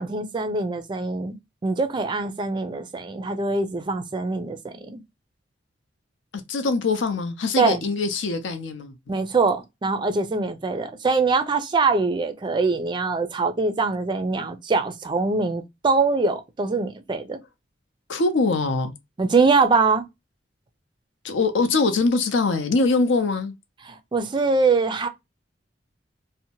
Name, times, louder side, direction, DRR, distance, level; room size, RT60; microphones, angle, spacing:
voice 1, 0.0-1.4 1.6-5.0 7.6-7.8 9.1-17.4 19.2-20.0 23.9-25.1, right 4 dB, 25° right, 0.3 m, -23 dB
voice 2, 6.5-9.2 18.1-18.9 21.2-23.5, left 3 dB, 75° left, 0.6 m, -23 dB
2.7 x 2.1 x 2.8 m
head